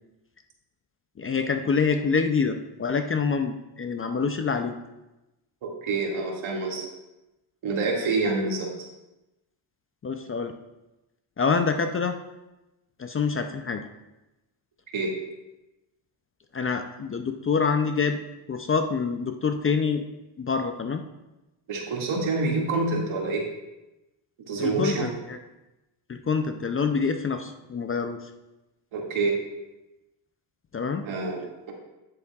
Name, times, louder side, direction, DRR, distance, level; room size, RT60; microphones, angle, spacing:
voice 1, 1.2-4.7 10.0-10.5 11.4-12.1 13.0-13.8 16.5-18.2 18.5-20.0 20.4-21.0 24.6-25.4 26.1-28.2 30.7-31.0, left 5 dB, 30° left, 7 dB, 0.5 m, -26 dB
voice 2, 5.6-6.8 7.6-8.7 14.9-15.1 21.7-23.5 24.5-25.1 28.9-29.4 31.0-31.7, right 3 dB, 70° right, -1 dB, 2.2 m, -27 dB
9.8 x 8.2 x 2.4 m, 0.99 s
cardioid pair, 95°, 49 cm